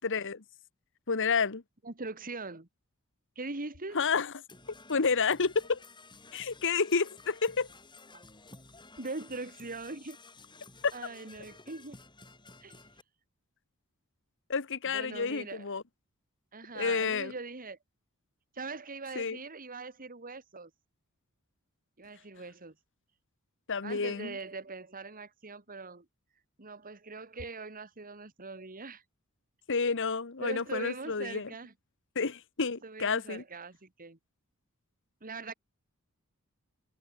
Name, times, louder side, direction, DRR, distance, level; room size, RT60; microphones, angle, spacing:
voice 1, 0.0-0.4 1.1-1.6 3.9-4.3 4.9-5.8 6.3-7.7 10.8-10.9 14.5-15.8 16.7-17.3 19.1-19.4 23.7-24.4 29.7-31.5 32.1-33.4, left 5 dB, 60° left, 1.2 m, -30 dB
voice 2, 1.8-2.7 3.4-4.0 9.0-10.2 10.9-12.0 12.6-12.9 14.9-15.8 16.5-17.8 18.5-20.7 22.0-22.7 23.8-26.1 26.6-29.0 30.4-31.7 32.8-34.2 35.2-35.5, right 3 dB, 40° right, 2.2 m, -42 dB
Percussion / Brass instrument, 4.5-13.0, left 3 dB, 20° left, 7.6 m, -54 dB
head